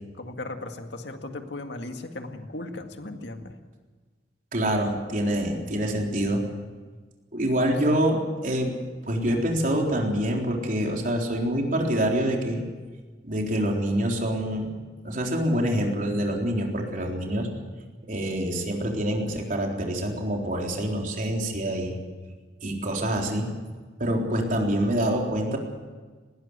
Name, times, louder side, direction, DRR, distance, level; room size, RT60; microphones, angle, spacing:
voice 1, 0.2-3.5 7.5-7.6, left 2 dB, 90° left, 5 dB, 2.1 m, -37 dB
voice 2, 4.5-6.4 7.3-8.7 9.0-12.6 13.2-14.7 15.0-17.5 18.1-22.0 22.6-23.5 24.0-25.6, right 1 dB, 50° right, 1 dB, 3.9 m, -26 dB
20.0 x 18.0 x 8.2 m, 1.4 s
head